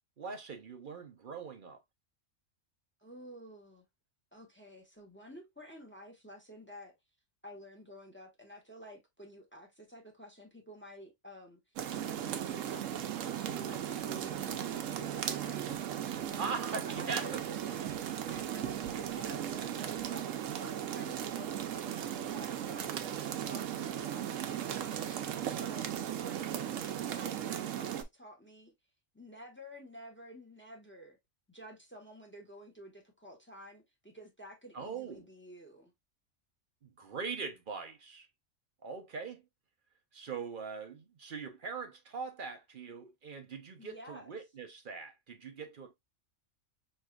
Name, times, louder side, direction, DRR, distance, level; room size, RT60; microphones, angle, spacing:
voice 1, 0.2-1.8 16.4-17.4 34.7-35.2 36.8-38.3 38.8-39.4 40.1-45.9, right 5 dB, 50° right, 0.7 m, -41 dB
voice 2, 3.0-3.8 4.3-6.9 7.4-11.6 11.9-16.5 16.8-25.9 26.2-26.8 27.1-28.7 29.1-31.2 31.5-35.9 43.8-44.3, equal, 10° left, 0.9 m, -51 dB
sound 1, 11.8-28.0, right 10 dB, 85° right, 1.0 m, -37 dB
5.3 x 3.2 x 2.2 m
omnidirectional pair, 1.3 m